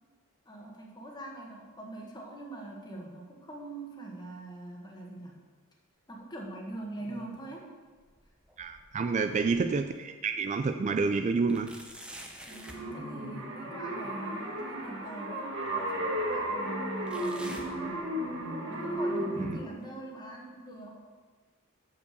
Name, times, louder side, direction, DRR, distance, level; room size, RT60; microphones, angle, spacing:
voice 1, 0.4-5.4 6.1-7.7 9.1-9.4 12.4-18.2 18.7-21.0, right 1 dB, 20° left, -1 dB, 1.4 m, -43 dB
sound 1, 7.0-7.6 8.0-9.9 10.4-10.5 11.5-12.9 14.6-14.7 15.6-15.7 17.1-18.5 18.8-19.2 19.8-19.9 20.8-20.9, right 1 dB, 5° right, 0.8 m, -49 dB
voice 2, 8.6-11.7 19.4-19.6, right 4 dB, 35° right, 8 dB, 0.3 m, -29 dB
sound 2, 12.5-19.6, right 1 dB, 65° right, 1.7 m, -34 dB
6.9 x 5.5 x 6.5 m, 1.4 s
head